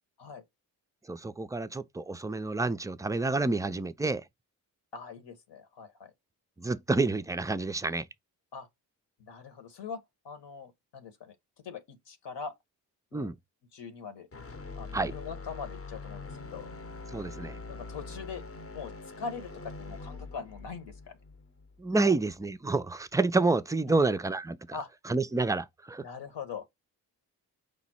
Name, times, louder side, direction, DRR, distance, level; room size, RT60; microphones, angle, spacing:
voice 1, 1.1-4.2 6.6-8.1 13.1-13.4 14.9-15.1 17.1-17.6 21.8-24.6 25.1-26.1, right 3 dB, 10° right, 0.3 m, -28 dB
voice 2, 4.9-6.1 8.5-8.7 9.2-11.3 11.6-12.5 13.1-13.3 13.7-14.3 14.8-16.7 17.7-18.4 18.7-21.2 22.0-22.2 23.9-24.0 24.7-24.9 26.0-26.6, left 5 dB, 70° left, 1.1 m, -42 dB
sound 1, 14.3-22.5, left 3 dB, 30° left, 0.8 m, -44 dB
5.0 x 2.0 x 4.2 m
supercardioid pair, 45°, 44 cm